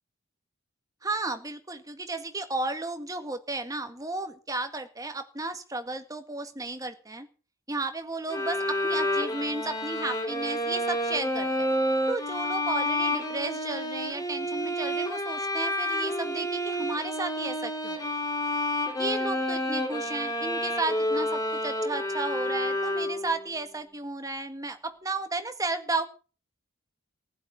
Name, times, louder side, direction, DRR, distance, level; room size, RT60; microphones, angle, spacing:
voice 1, 1.0-7.3 7.7-11.7 12.1-18.0 19.0-26.1, right 2 dB, 15° right, 8 dB, 1.8 m, -33 dB
sound 1, 8.3-23.4, left 1 dB, 15° left, 3.8 m, -29 dB
15.0 x 11.5 x 6.9 m, 0.37 s
head